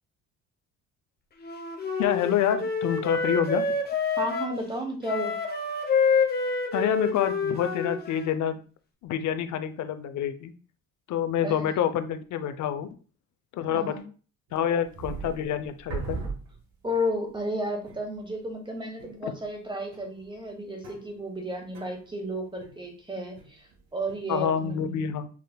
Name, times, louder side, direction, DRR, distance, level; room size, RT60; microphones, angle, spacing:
Wind instrument woodwind instrument, 1.4-4.6 5.0-8.4, left 4 dB, 30° left, 0.9 m, -27 dB
voice 1, 2.0-3.8 6.7-8.6 9.0-10.5 11.1-13.0 13.5-13.9 14.5-16.2 19.2-19.3 24.3-25.3, left 9 dB, 60° left, 11 dB, 0.6 m, -27 dB
voice 2, 4.2-5.4 11.4-11.7 13.7-14.0 16.8-25.2, equal, 15° right, 2 dB, 1.2 m, -33 dB
piano strings, 14.5-17.0 17.4-17.5 17.9-18.4 19.0-19.6 19.9-23.8 24.1-24.7, right 4 dB, 80° right, 2.0 m, -40 dB
5.8 x 3.2 x 2.2 m, 0.38 s
cardioid pair, 110°, 34 cm